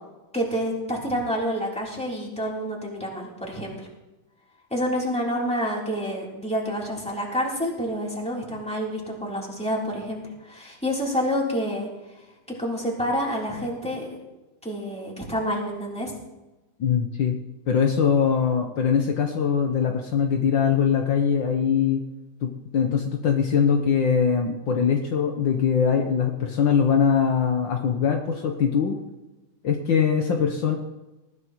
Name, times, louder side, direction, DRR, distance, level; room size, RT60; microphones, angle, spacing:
voice 1, 0.3-3.9 4.7-11.9 12.6-14.1 14.6-16.1, equal, 5° left, -4 dB, 3.5 m, -28 dB
voice 2, 16.8-17.3 17.7-22.0 22.4-29.0 29.6-30.8, left 7 dB, 65° left, 3 dB, 1.7 m, -22 dB
20.0 x 14.5 x 3.1 m, 1.1 s
omnidirectional pair, 2.3 m